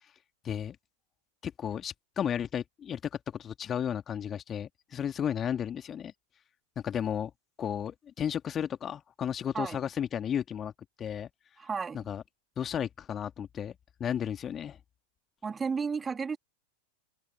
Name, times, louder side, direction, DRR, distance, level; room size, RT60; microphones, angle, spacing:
voice 1, 0.4-0.8 1.4-3.0 3.3-6.1 6.8-7.3 7.6-10.7 11.0-11.3 11.9-12.2 12.6-13.7 14.0-14.8, left 9 dB, 25° left, 2.3 m, -33 dB
voice 2, 11.6-12.1 15.4-16.4, right 5 dB, 15° right, 2.7 m, -33 dB
figure-of-eight pair, 90°, 0 cm